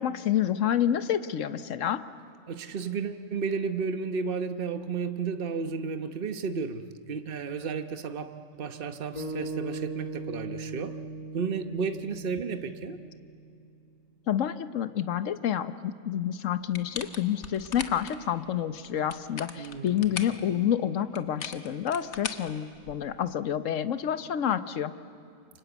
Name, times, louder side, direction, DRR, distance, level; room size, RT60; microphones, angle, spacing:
voice 1, 0.0-2.0 14.3-24.9, left 10 dB, 75° left, 1.3 m, -28 dB
voice 2, 2.5-11.0 11.3-13.1 19.6-20.2, right 5 dB, 45° right, 1.2 m, -33 dB
sound 1, 9.1-13.5, right 2 dB, 30° left, 2.9 m, -38 dB
sound 2, 16.7-18.2 18.9-20.4 21.1-23.2, left 5 dB, 60° left, 1.5 m, -39 dB
29.0 x 25.0 x 8.2 m
omnidirectional pair, 1.3 m